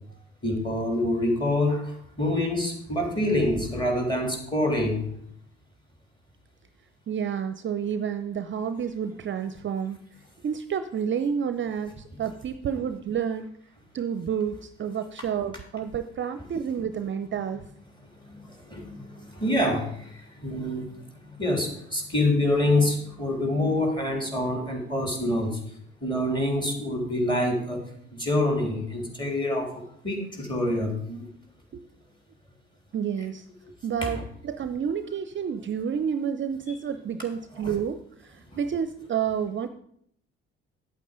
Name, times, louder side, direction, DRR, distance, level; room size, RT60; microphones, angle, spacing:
voice 1, 0.4-5.0 18.2-21.0 21.4-25.6 26.0-27.9 28.1-31.3 38.5-38.6, left 1 dB, 15° left, 2 dB, 3.4 m, -26 dB
voice 2, 7.1-10.0 10.4-13.5 13.9-17.7 31.7-31.8 32.9-33.5 33.8-39.7, right 7 dB, 40° right, 11 dB, 0.6 m, -30 dB
8.6 x 8.4 x 5.1 m, 0.69 s
hypercardioid pair, 55°, 31 cm